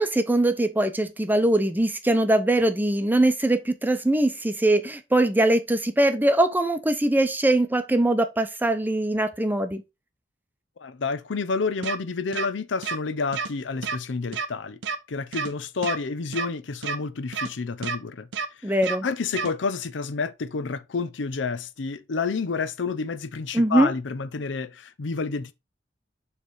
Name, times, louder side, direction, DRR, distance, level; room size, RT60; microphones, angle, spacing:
voice 1, 0.0-9.8 18.6-19.1 23.5-23.9, right 1 dB, 10° right, 0.6 m, -22 dB
voice 2, 10.8-14.8 15.1-18.3 18.6-18.7 19.0-25.5, left 4 dB, 85° left, 0.6 m, -29 dB
sound 1, 11.8-12.0 12.3-12.5 12.8-13.0 13.3-13.5 13.8-14.0 14.3-14.5 14.8-15.0 15.3-15.5 15.8-16.0 16.3-16.5 16.8-17.0 17.3-17.5 17.8-18.0 18.3-18.5 18.8-19.0 19.3-19.5, right 5 dB, 85° right, 0.8 m, -29 dB
7.0 x 3.3 x 4.3 m
head